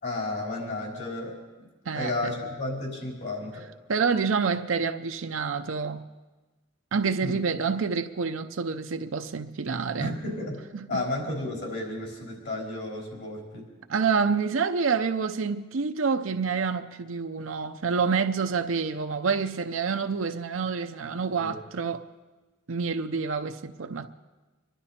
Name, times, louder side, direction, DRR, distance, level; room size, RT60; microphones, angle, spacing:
voice 1, 0.0-1.7 1.9-3.7 7.2-7.4 10.0-10.6 10.9-13.7 21.4-21.6, left 2 dB, 60° left, 4.2 m, -32 dB
voice 2, 3.9-6.1 6.9-10.1 10.7-11.0 13.9-22.1 22.7-24.1, right 5 dB, 70° right, 0.6 m, -27 dB
25.0 x 11.5 x 4.3 m
head